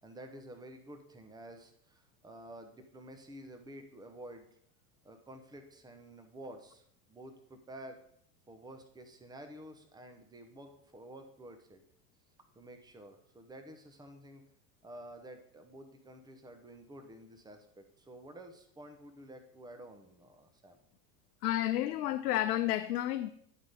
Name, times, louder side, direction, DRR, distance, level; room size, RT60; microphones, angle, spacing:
voice 1, 0.0-4.5 5.0-6.8 7.1-8.0 8.5-11.8 12.5-14.5 14.8-20.8, right 1 dB, 10° right, 1.1 m, -50 dB
voice 2, 21.4-23.3, left 13 dB, 80° left, 0.6 m, -31 dB
11.0 x 4.0 x 5.2 m
hypercardioid pair, 95°, 46 cm